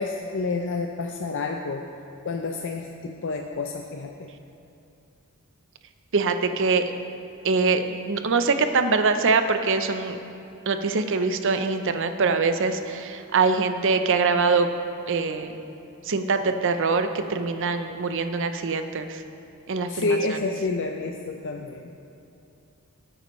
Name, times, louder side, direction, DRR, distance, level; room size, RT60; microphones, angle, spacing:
voice 1, 0.0-1.9 2.2-4.3 19.9-21.9, left 3 dB, 60° left, 3 dB, 0.5 m, -29 dB
voice 2, 6.1-6.8 7.4-10.2 10.7-14.7 15.1-15.5 16.0-19.2 19.7-20.4, right 4 dB, 60° right, 8 dB, 0.6 m, -23 dB
18.5 x 8.9 x 3.1 m, 2.7 s
head